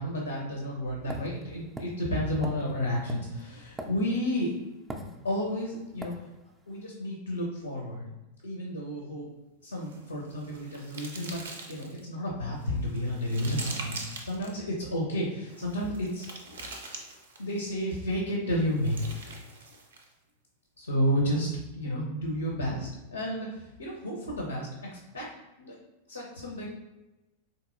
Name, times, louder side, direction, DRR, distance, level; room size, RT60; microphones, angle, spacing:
voice 1, 0.0-4.5 5.2-6.1 6.7-8.1 8.4-9.3 9.6-16.3 16.6-16.8 17.4-19.2 20.8-25.3 25.6-25.8 26.1-26.7, equal, 80° left, -1 dB, 0.6 m, -31 dB
sound 1, 1.1-4.4 4.9-5.6 6.0-6.2, right 1 dB, 15° right, 0.4 m, -40 dB
sound 2, 9.8-12.0 12.6-14.5 15.4-17.6 18.5-20.1, right 3 dB, 65° right, 0.5 m, -43 dB
4.0 x 2.7 x 2.4 m, 1.0 s
figure-of-eight pair, 90°, 0 cm